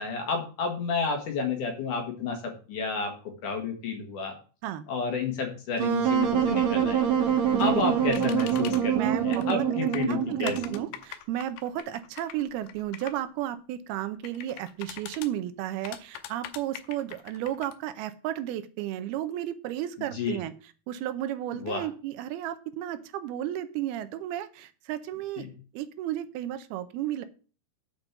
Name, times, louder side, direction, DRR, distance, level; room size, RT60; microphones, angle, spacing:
voice 1, 0.0-4.4 4.9-7.1 7.6-10.6 20.0-20.4 21.6-21.9 25.4-25.5, left 5 dB, 60° left, 4 dB, 2.9 m, -31 dB
Wind instrument woodwind instrument, 5.8-10.9, right 8 dB, 60° right, 2.1 m, -25 dB
voice 2, 7.5-7.9 8.9-9.6 10.1-20.5 20.9-25.5 25.7-27.2, right 12 dB, 80° right, 11 dB, 2.6 m, -33 dB
sound 1, 8.1-8.8 9.3-9.6 9.9-13.2 14.2-15.3 15.8-17.8, left 12 dB, 90° left, 2.8 m, -41 dB
9.0 x 5.2 x 7.2 m, 0.37 s
omnidirectional pair, 4.6 m